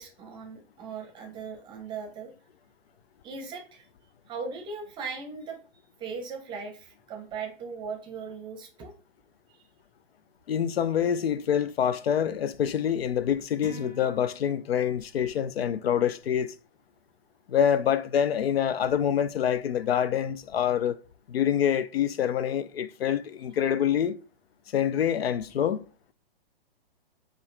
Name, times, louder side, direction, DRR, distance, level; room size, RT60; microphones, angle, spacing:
voice 1, 0.0-2.3 3.2-3.9 4.3-5.6 6.0-8.9, right 5 dB, 15° right, 0.7 m, -38 dB
voice 2, 10.5-16.5 17.5-21.0 21.3-24.2 24.7-25.8, left 9 dB, 90° left, 0.5 m, -26 dB
sound 1, 13.6-15.1, right 3 dB, 55° left, 1.6 m, -46 dB
4.5 x 2.4 x 3.2 m
hypercardioid pair, 135°, 29 cm